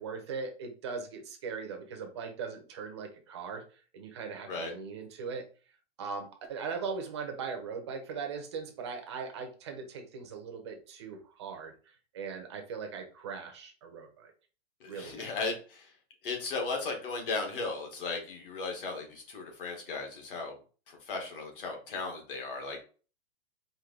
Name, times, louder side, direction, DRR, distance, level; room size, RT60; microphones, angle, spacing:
voice 1, 0.0-5.5 6.0-14.3 14.9-15.3, right 5 dB, 25° right, 4 dB, 0.6 m, -40 dB
voice 2, 14.8-15.9 16.2-20.6 20.9-22.8, left 3 dB, 55° left, 2 dB, 1.6 m, -36 dB
4.8 x 2.7 x 3.8 m, 0.38 s
hypercardioid pair, 180°, 33 cm